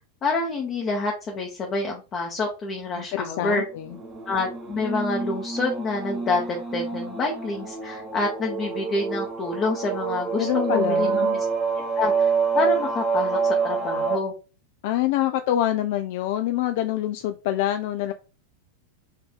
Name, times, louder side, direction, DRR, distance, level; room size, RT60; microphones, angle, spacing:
voice 1, 0.2-3.6 4.3-11.3 12.0-14.3, left 3 dB, 30° left, 0 dB, 0.8 m, -27 dB
voice 2, 3.0-4.0 10.4-11.4 14.8-18.1, left 13 dB, 50° left, 7 dB, 0.3 m, -26 dB
sound 1, 3.9-14.2, right 5 dB, 20° right, 1.0 m, -27 dB
4.3 x 2.6 x 3.5 m, 0.32 s
figure-of-eight pair, 90°, 0 cm